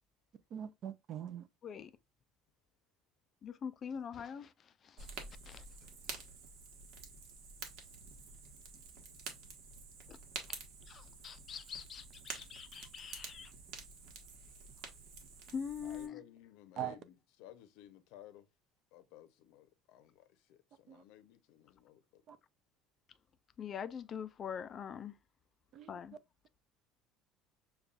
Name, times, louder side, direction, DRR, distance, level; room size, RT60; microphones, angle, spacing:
voice 1, 0.5-1.5 16.8-16.9 20.9-21.0 22.3-22.4 25.7-25.9, right 10 dB, 45° right, 0.5 m, -42 dB
voice 2, 3.4-6.2 10.1-10.2 10.5-10.6 10.9-13.5 15.5-16.2 23.6-25.2 25.9-26.2, left 7 dB, 30° left, 0.3 m, -44 dB
Fire, 5.0-16.1, right 5 dB, 65° right, 1.2 m, -49 dB
voice 3, 15.8-18.5 18.9-22.2, left 12 dB, 75° left, 0.7 m, -57 dB
6.7 x 2.3 x 2.4 m
cardioid pair, 155°, 0 cm